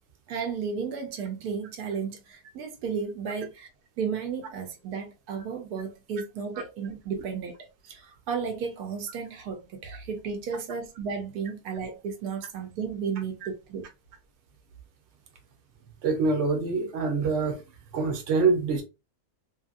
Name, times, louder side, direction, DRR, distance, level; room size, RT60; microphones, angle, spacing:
voice 1, 0.3-3.7 4.0-7.6 7.8-13.9, right 6 dB, 80° right, 1.1 m, -33 dB
voice 2, 16.0-17.6 17.9-18.8, right 4 dB, 50° right, 1.0 m, -25 dB
2.7 x 2.7 x 2.5 m
omnidirectional pair, 1.6 m